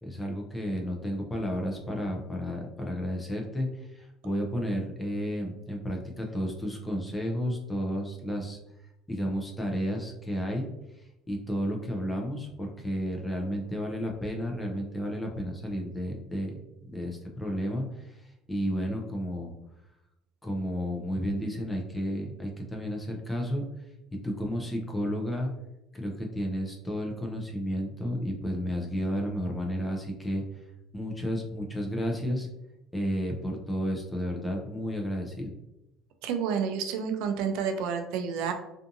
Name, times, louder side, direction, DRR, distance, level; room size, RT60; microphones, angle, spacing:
voice 1, 0.0-8.6 9.1-10.7 11.3-16.5 16.9-19.5 20.4-23.6 24.2-25.5 25.9-30.4 30.9-32.5 32.9-35.5, equal, 10° left, 0 dB, 0.4 m, -32 dB
voice 2, 36.2-38.5, right 7 dB, 70° right, 6 dB, 0.3 m, -29 dB
2.5 x 2.5 x 2.5 m, 0.91 s
cardioid pair, 170°, 0 cm